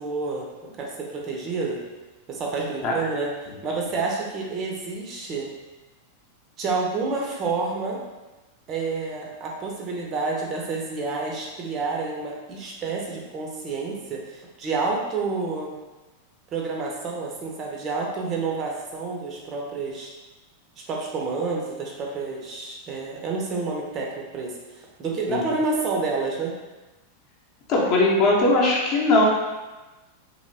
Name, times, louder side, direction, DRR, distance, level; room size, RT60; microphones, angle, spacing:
voice 1, 0.0-1.8 2.3-3.3 3.6-5.5 6.6-8.0 8.7-15.7 16.5-20.1 20.8-26.5, right 4 dB, 35° right, -1 dB, 0.5 m, -29 dB
voice 2, 27.7-29.2, left 2 dB, 40° left, -3 dB, 0.7 m, -20 dB
2.8 x 2.7 x 2.7 m, 1.1 s
figure-of-eight pair, 90°, 0 cm